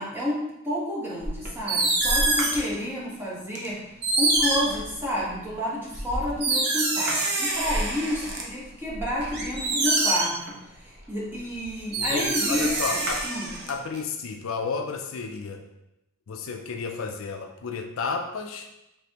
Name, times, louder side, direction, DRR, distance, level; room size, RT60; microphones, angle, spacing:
voice 1, 0.0-3.8 4.2-13.5, equal, 10° right, -7 dB, 1.3 m, -30 dB
sound 1, 1.2-2.8 3.6-3.7 4.0-5.3 5.9-8.4 8.9-10.5 11.6-11.7 11.9-14.0, right 2 dB, 50° right, 0.8 m, -25 dB
voice 2, 12.0-13.2 13.7-15.6 16.3-18.7, left 5 dB, 65° left, 5 dB, 0.4 m, -32 dB
5.2 x 3.5 x 2.9 m, 0.89 s
head